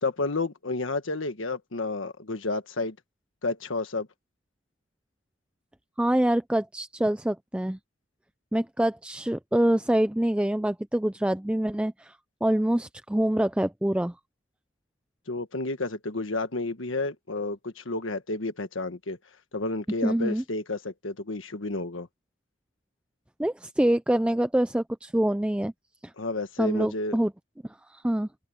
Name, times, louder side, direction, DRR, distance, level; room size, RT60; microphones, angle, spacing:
voice 1, 0.0-2.9 3.4-4.1 15.3-19.2 19.5-22.1 26.2-27.2, left 2 dB, 85° left, 1.5 m, -31 dB
voice 2, 6.0-7.8 8.5-12.1 12.4-14.1 20.0-20.4 23.4-25.7 26.0-26.1 26.6-27.3 27.9-28.3, right 1 dB, 5° right, 0.3 m, -25 dB
open air
head